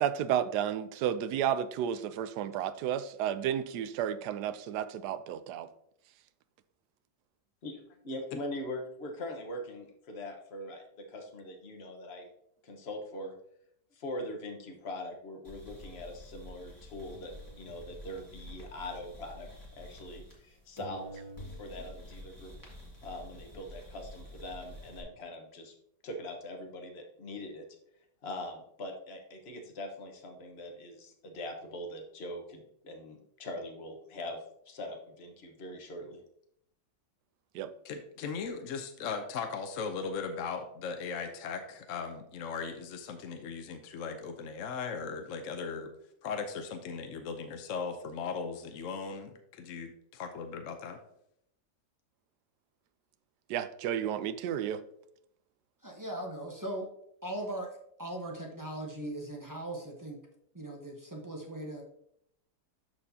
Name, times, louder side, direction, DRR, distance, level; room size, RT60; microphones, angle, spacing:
voice 1, 0.0-5.7 37.5-37.7 53.5-54.8, right 10 dB, 75° right, 13 dB, 1.1 m, -32 dB
voice 2, 8.0-12.3 12.6-13.3 13.9-21.2 21.6-22.5 23.0-25.7 26.0-27.6 28.2-36.2, left 1 dB, 40° left, 2 dB, 1.3 m, -42 dB
sound 1, 15.4-20.5 20.8-25.0, equal, 10° left, 1.8 m, -48 dB
voice 3, 37.8-45.9 46.2-51.0, left 5 dB, 60° left, 6 dB, 0.9 m, -38 dB
voice 4, 55.8-56.9 57.2-60.2 60.5-61.8, right 1 dB, 15° right, 0 dB, 0.8 m, -39 dB
12.5 x 4.4 x 2.8 m, 0.73 s
omnidirectional pair, 1.8 m